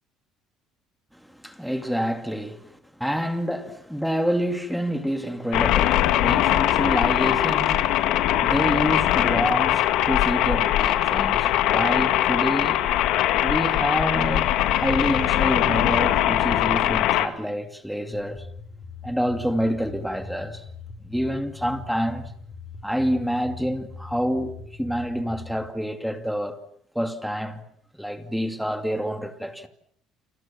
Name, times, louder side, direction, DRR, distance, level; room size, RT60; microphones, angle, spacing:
voice 1, 1.4-2.7 3.0-7.9 8.4-12.9 13.4-18.4 19.0-20.6 21.0-22.3 22.8-26.6 26.9-27.6 27.9-29.7, equal, ahead, 2.4 m, -27 dB
sound 1, 5.5-17.3, left 13 dB, 70° left, 2.1 m, -21 dB
sound 2, 18.1-25.5, left 4 dB, 25° left, 7.1 m, -41 dB
29.5 x 28.0 x 5.9 m
cardioid pair, 140°, 0 cm